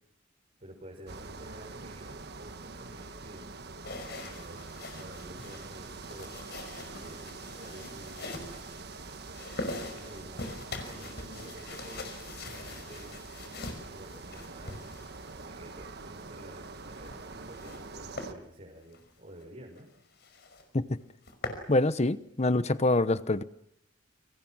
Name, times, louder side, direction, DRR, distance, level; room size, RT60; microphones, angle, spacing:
voice 1, 0.6-3.5 4.3-8.5 9.7-12.2 12.5-13.2 13.9-14.8 15.3-19.9 22.6-22.7, right 1 dB, 40° right, -3 dB, 5.9 m, -50 dB
sound 1, 1.1-18.3, right 3 dB, 55° right, 1.6 m, -45 dB
sound 2, 3.8-15.5 16.8-17.8 18.2-18.3 18.8-19.0 19.4-19.5 19.8-19.9 20.2-20.6 21.0-21.7, left 2 dB, 55° left, 5.6 m, -43 dB
voice 2, 21.7-23.4, left 2 dB, 35° left, 14 dB, 1.0 m, -25 dB
30.0 x 25.5 x 6.3 m, 0.73 s
head